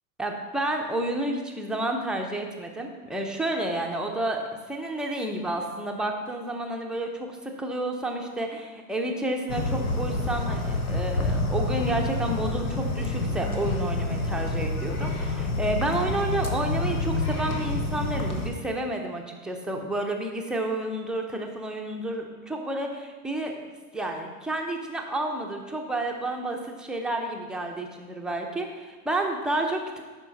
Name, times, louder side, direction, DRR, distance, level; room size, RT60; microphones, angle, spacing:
voice 1, 0.2-23.5 23.9-30.0, right 1 dB, ahead, 1 dB, 0.5 m, -30 dB
sound 1, 9.5-18.5, left 2 dB, 75° left, 1.2 m, -28 dB
10.5 x 4.4 x 4.0 m, 1.4 s
figure-of-eight pair, 100°, 44 cm